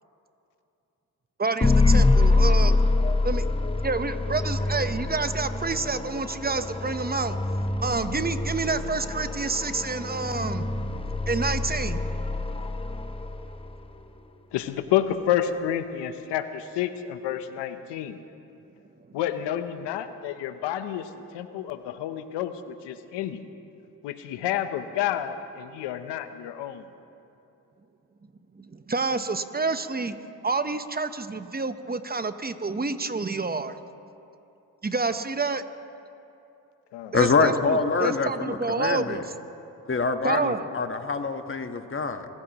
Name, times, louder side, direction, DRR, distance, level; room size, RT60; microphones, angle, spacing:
voice 1, 1.4-2.8 3.2-3.5 3.8-7.4 7.8-10.7 11.3-12.0 28.6-30.2 30.4-33.8 34.8-35.6 37.1-39.2 40.2-40.7, right 3 dB, 25° right, 10 dB, 1.0 m, -28 dB
sound 1, 1.6-13.8, left 2 dB, 15° left, 0.9 m, -25 dB
voice 2, 14.5-18.2 19.1-23.4 24.0-26.8 36.9-37.1, left 11 dB, 85° left, 10 dB, 0.9 m, -29 dB
voice 3, 37.1-39.2 39.9-42.3, left 4 dB, 30° left, 7 dB, 1.3 m, -25 dB
25.0 x 14.5 x 3.0 m, 2.7 s
supercardioid pair, 55°, 41 cm